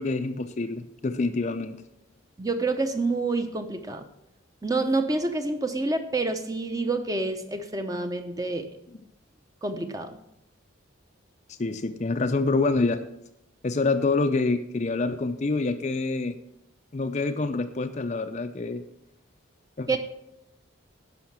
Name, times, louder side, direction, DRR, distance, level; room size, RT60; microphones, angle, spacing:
voice 1, 0.0-1.8 11.5-13.0 13.6-16.3 16.9-18.8 19.8-20.0, left 3 dB, 35° left, 9 dB, 0.5 m, -26 dB
voice 2, 2.4-4.0 4.6-8.7 9.6-10.2 19.9-20.0, right 3 dB, 15° right, 7 dB, 0.8 m, -28 dB
11.5 x 5.7 x 7.3 m, 0.83 s
head